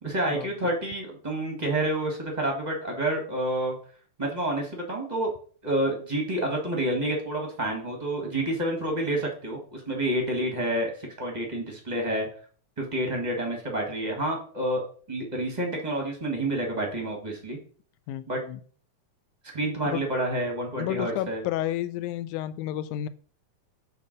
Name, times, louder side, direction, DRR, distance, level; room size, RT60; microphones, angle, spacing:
voice 1, 0.0-3.8 4.2-5.3 5.6-12.3 12.8-17.6 18.3-18.4 19.4-21.4, right 1 dB, 40° right, 1 dB, 0.6 m, -29 dB
voice 2, 18.1-18.6 19.9-20.0 20.8-23.1, left 12 dB, 80° left, 13 dB, 2.0 m, -31 dB
8.2 x 3.2 x 6.5 m, 0.44 s
omnidirectional pair, 3.6 m